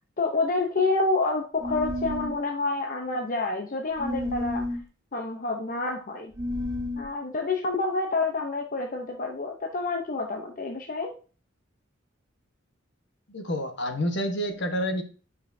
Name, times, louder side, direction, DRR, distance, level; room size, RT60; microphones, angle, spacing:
voice 1, 0.2-4.8 5.1-6.3 7.0-11.1, left 3 dB, 45° left, 2 dB, 0.8 m, -28 dB
sound 1, 1.6-2.4 4.0-4.8 6.3-7.1, left 1 dB, 20° right, 0.6 m, -31 dB
voice 2, 13.3-15.0, equal, 60° left, 6 dB, 1.3 m, -28 dB
9.2 x 5.6 x 2.7 m, 0.37 s
head